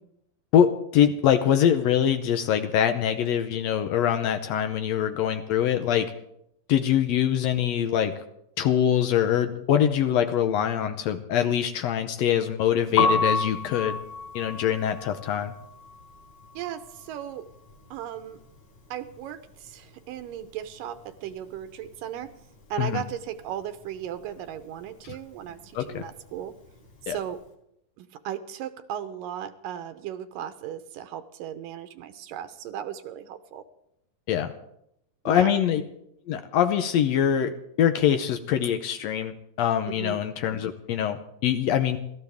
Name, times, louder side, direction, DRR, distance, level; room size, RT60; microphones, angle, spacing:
voice 1, 0.5-6.1 6.7-8.1 8.6-14.0 14.3-15.5 22.8-23.0 25.0-25.1 25.7-26.0 27.1-27.2 34.3-34.5 35.2-35.8 36.3-42.0, left 9 dB, 85° left, 7 dB, 1.5 m, -24 dB
Piano, 12.8-18.8 19.0-20.6 20.9-27.3, left 4 dB, 55° left, 4.6 m, -31 dB
voice 2, 16.5-17.5 17.9-18.4 18.9-22.3 22.7-26.5 27.0-27.4 28.0-33.6 35.3-35.5 40.0-40.2, right 10 dB, 80° right, 10 dB, 2.5 m, -36 dB
29.0 x 13.5 x 3.5 m, 0.78 s
omnidirectional pair, 4.0 m